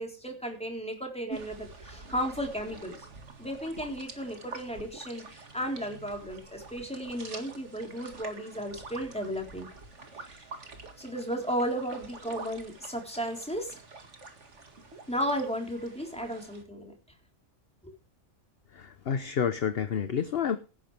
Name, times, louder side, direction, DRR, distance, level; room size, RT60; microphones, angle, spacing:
voice 1, 0.0-3.1 3.4-9.7 10.1-10.4 11.0-13.8 15.1-16.9 17.8-17.9, equal, 5° left, 2 dB, 3.8 m, -34 dB
sound 1, 1.3-16.6, right 3 dB, 60° right, 2.3 m, -47 dB
voice 2, 18.7-20.6, left 7 dB, 50° left, 10 dB, 1.0 m, -29 dB
17.5 x 9.6 x 3.4 m, 0.33 s
omnidirectional pair, 1.4 m